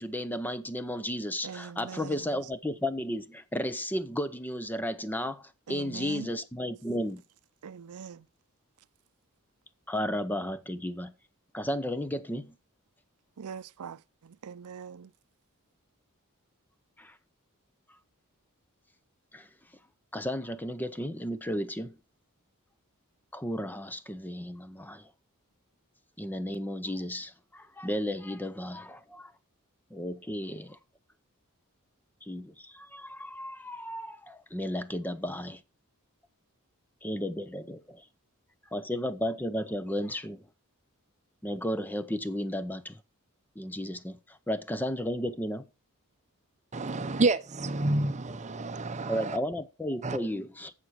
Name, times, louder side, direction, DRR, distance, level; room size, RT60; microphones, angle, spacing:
voice 1, 0.0-7.2 9.9-11.1 11.5-12.5 17.0-17.1 19.3-19.5 20.1-22.0 23.3-25.1 26.2-29.3 29.9-30.8 32.2-35.6 37.0-38.0 38.7-40.4 41.4-43.0 43.6-45.6 49.1-50.7, equal, 10° left, 0.6 m, -34 dB
voice 2, 1.4-2.5 5.7-6.3 7.6-8.3 13.4-15.1, right 6 dB, 85° right, 0.5 m, -42 dB
voice 3, 46.7-49.4 50.0-50.2, right 2 dB, 35° right, 0.8 m, -29 dB
11.0 x 7.3 x 4.6 m
head